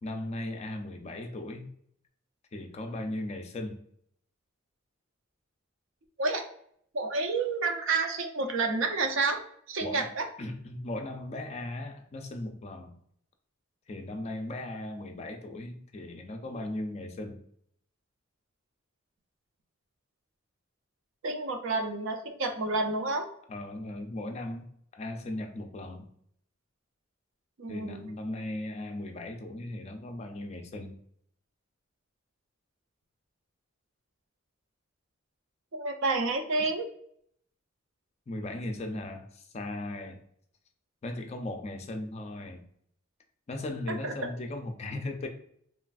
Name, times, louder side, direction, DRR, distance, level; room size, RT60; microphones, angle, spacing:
voice 1, 0.0-1.7 2.5-3.8 9.8-10.1 10.4-12.9 13.9-17.4 23.5-24.7 24.9-26.1 27.7-31.0 38.3-40.2 41.0-42.6 43.5-45.3, left 1 dB, 30° left, 4 dB, 0.3 m, -37 dB
voice 2, 6.9-9.4 9.7-10.3 21.2-23.2 27.6-28.1 35.7-36.9 44.0-44.1, right 3 dB, 70° right, 4 dB, 0.5 m, -29 dB
3.1 x 2.4 x 2.3 m, 0.65 s
head